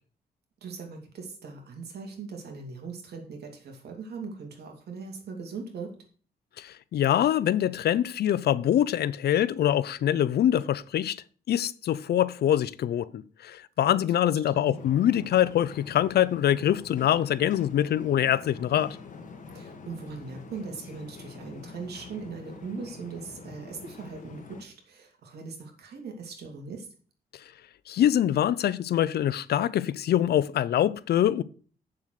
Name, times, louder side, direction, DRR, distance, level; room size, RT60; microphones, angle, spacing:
voice 1, 0.6-5.9 13.9-14.0 14.3-14.9 19.5-26.9, right 4 dB, 85° right, 3.0 m, -40 dB
voice 2, 6.6-11.2 11.5-19.0 27.9-31.4, left 11 dB, 80° left, 0.6 m, -24 dB
sound 1, 14.7-24.6, left 4 dB, 50° left, 1.9 m, -45 dB
7.9 x 7.1 x 6.6 m
cardioid pair, 120°, 16 cm